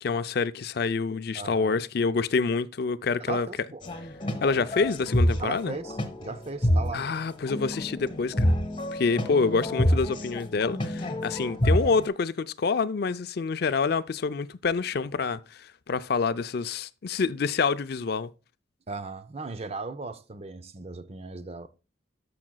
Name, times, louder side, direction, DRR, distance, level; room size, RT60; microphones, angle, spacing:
voice 1, 0.0-3.5 4.4-5.7 6.9-8.5 8.9-18.3, left 4 dB, 55° left, 0.4 m, -27 dB
voice 2, 1.3-1.8 3.3-3.8 5.4-7.1 18.9-21.7, right 3 dB, 35° right, 0.6 m, -37 dB
sound 1, 3.8-12.1, equal, 25° left, 1.2 m, -28 dB
13.5 x 5.9 x 2.2 m
head